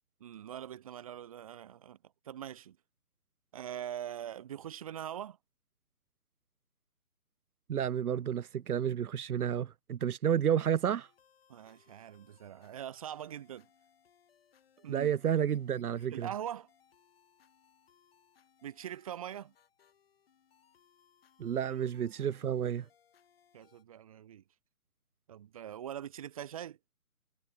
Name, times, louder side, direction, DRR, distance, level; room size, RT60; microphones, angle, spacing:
voice 1, 0.2-2.0 2.2-2.8 3.5-5.4 11.5-13.7 14.8-15.1 16.1-16.7 18.6-19.5 21.6-21.7 23.5-24.4 25.3-26.8, right 10 dB, 25° right, 1.5 m, -42 dB
voice 2, 7.7-11.1 14.9-16.3 21.4-22.9, right 9 dB, 85° right, 0.6 m, -31 dB
sound 1, 10.8-23.8, left 8 dB, 40° left, 4.8 m, -68 dB
hypercardioid pair, 160°, 44 cm